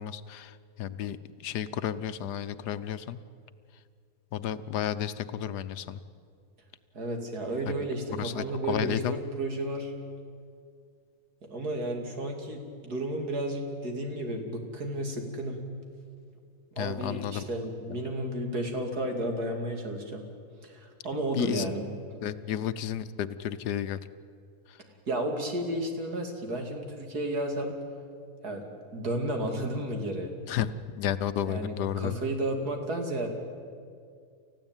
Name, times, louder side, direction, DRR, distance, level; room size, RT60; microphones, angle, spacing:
voice 1, 0.0-3.2 4.3-6.0 7.8-9.2 16.8-17.4 21.3-21.7 22.2-24.0 24.7-24.8 30.5-32.2, left 10 dB, 85° left, 13 dB, 1.4 m, -32 dB
voice 2, 6.9-9.9 11.5-15.6 16.8-20.2 20.6-21.9 25.1-27.8 28.4-30.3 31.4-33.3, right 1 dB, 70° right, 3 dB, 3.2 m, -32 dB
29.0 x 15.0 x 9.0 m, 2.2 s
omnidirectional pair, 1.7 m